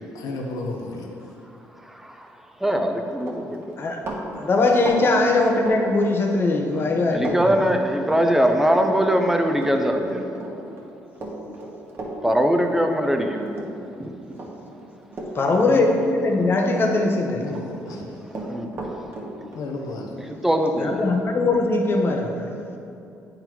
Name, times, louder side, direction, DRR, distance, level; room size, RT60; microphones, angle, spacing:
voice 1, 0.1-1.1 17.4-18.0 19.5-20.1, left 3 dB, 75° left, 1 dB, 0.8 m, -32 dB
voice 2, 1.9-2.3 2.6-3.6 7.1-10.2 12.2-13.4 14.0-14.1 18.5-18.9 20.3-21.0, equal, 5° right, 4 dB, 0.6 m, -21 dB
Run, 2.7-2.9 3.2-6.6 6.8-7.4 7.6-14.0 14.3-16.5 16.7-17.7 17.9-21.2, right 2 dB, 40° right, 1.2 m, -35 dB
voice 3, 4.3-7.6 15.3-17.5 20.8-22.5, left 2 dB, 40° left, 2 dB, 0.9 m, -21 dB
8.7 x 4.0 x 4.5 m, 2.7 s
cardioid pair, 95°, 6 cm